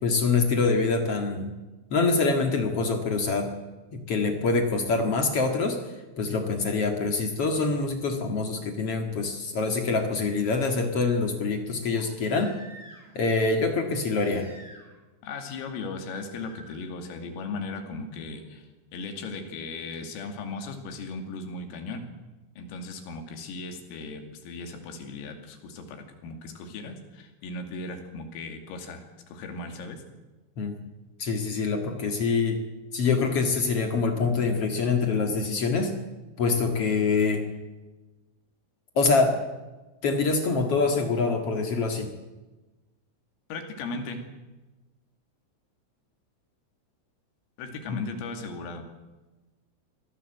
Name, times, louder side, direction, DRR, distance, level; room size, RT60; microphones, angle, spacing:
voice 1, 0.0-1.6 1.9-3.5 3.9-5.8 6.2-12.6 13.1-14.5 30.6-30.8 31.2-32.6 32.9-35.9 36.4-37.5 38.9-39.4 40.0-42.1 47.9-48.0, left 4 dB, 60° left, 4 dB, 1.6 m, -25 dB
Crying sobbing, 11.9-13.2 14.2-15.0 15.3-15.8 16.4-16.7 18.4-18.5, equal, 5° left, 5.9 m, -50 dB
voice 2, 15.2-22.0 22.6-30.0 43.5-44.2 47.6-48.8, left 3 dB, 90° left, 5 dB, 5.1 m, -37 dB
24.0 x 17.0 x 7.7 m, 1.1 s
omnidirectional pair, 5.8 m